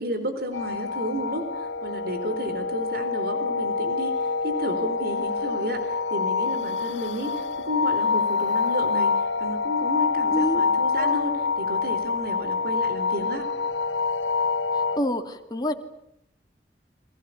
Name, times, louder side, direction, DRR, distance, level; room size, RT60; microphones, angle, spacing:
voice 1, 0.0-4.1 4.4-13.5, equal, 60° right, 8 dB, 4.2 m, -32 dB
sound 1, 0.5-15.0, left 4 dB, 90° left, 2.2 m, -26 dB
voice 2, 10.3-10.6 10.9-11.2 14.9-15.7, left 1 dB, 25° left, 4 dB, 2.8 m, -27 dB
30.0 x 25.0 x 7.0 m, 0.78 s
head